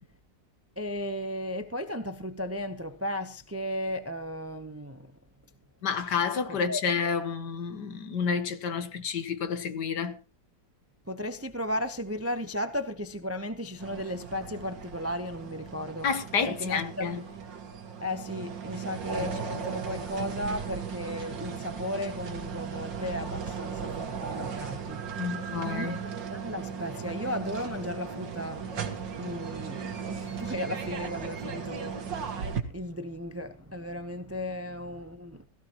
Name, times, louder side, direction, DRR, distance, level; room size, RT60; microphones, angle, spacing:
voice 1, 0.8-5.1 6.5-6.9 11.1-16.1 16.5-17.1 18.0-25.2 25.5-35.4, left 1 dB, 15° right, 0.4 m, -35 dB
voice 2, 5.8-10.2 16.0-17.2 25.2-26.0, left 6 dB, 65° left, 1.8 m, -30 dB
sound 1, 13.8-32.6, right 6 dB, 85° right, 2.3 m, -37 dB
17.0 x 16.5 x 3.0 m
omnidirectional pair, 1.9 m